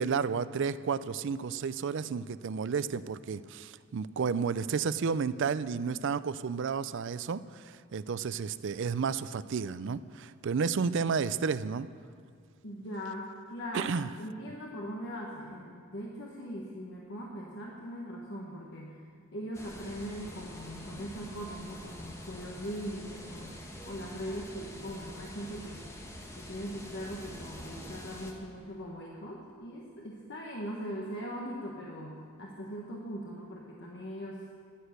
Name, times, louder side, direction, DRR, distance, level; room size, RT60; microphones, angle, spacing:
voice 1, 0.0-11.9 13.7-14.1, right 5 dB, 60° right, 15 dB, 0.4 m, -32 dB
voice 2, 12.6-19.0 19.3-25.9 26.3-34.4, equal, 55° left, -2 dB, 1.3 m, -40 dB
sound 1, 19.5-28.3, left 1 dB, 15° left, 1.3 m, -46 dB
14.5 x 10.0 x 6.6 m, 2.1 s
head